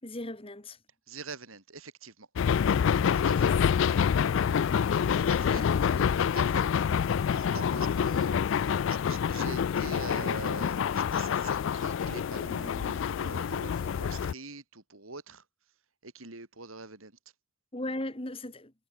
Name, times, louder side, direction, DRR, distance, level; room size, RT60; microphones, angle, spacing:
voice 1, 0.0-0.8 17.7-18.7, left 1 dB, 25° left, 2.1 m, -37 dB
voice 2, 1.1-2.3 3.1-3.5 4.6-4.7 5.1-5.7 5.9-6.6 7.3-8.4 8.9-15.4 16.0-17.1, right 3 dB, 80° right, 5.0 m, -44 dB
sound 1, 2.4-14.3, left 7 dB, 65° left, 0.3 m, -27 dB
head